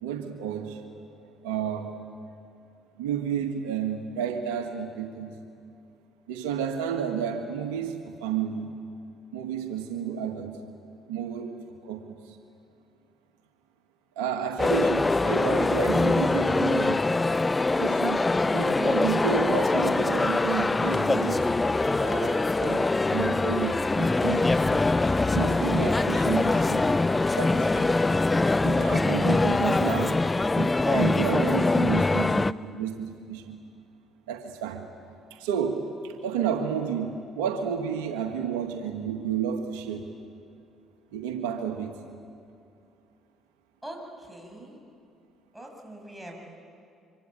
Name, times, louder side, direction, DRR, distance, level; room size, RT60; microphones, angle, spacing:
voice 1, 0.0-1.1 1.4-2.0 3.0-5.4 6.3-8.7 9.3-10.6 11.1-11.6 11.8-12.4 14.2-17.1 17.8-21.5 22.0-24.8 25.3-26.8 27.4-27.9 28.6-30.2 30.6-33.6 34.3-34.9 35.3-40.1 41.1-41.9, right 8 dB, 90° right, 4 dB, 1.7 m, -31 dB
sound 1, 14.6-32.5, left 3 dB, 20° left, 0.6 m, -23 dB
voice 2, 43.8-44.8 45.5-46.4, right 1 dB, 5° right, 1 dB, 7.8 m, -42 dB
26.0 x 25.0 x 8.9 m, 2.4 s
supercardioid pair, 65°, 0 cm